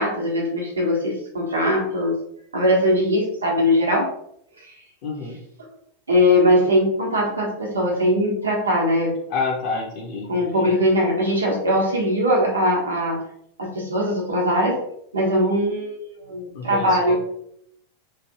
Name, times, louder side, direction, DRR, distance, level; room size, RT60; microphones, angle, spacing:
voice 1, 0.0-2.2 2.5-4.1 4.6-4.7 6.1-9.1 10.3-13.2 13.6-14.8 15.1-17.1, equal, 75° right, -2 dB, 1.0 m, -20 dB
voice 2, 5.0-5.4 9.3-10.7 16.5-17.1, left 4 dB, 50° left, -3 dB, 0.6 m, -28 dB
3.1 x 2.5 x 2.8 m, 0.72 s
figure-of-eight pair, 90°, 0 cm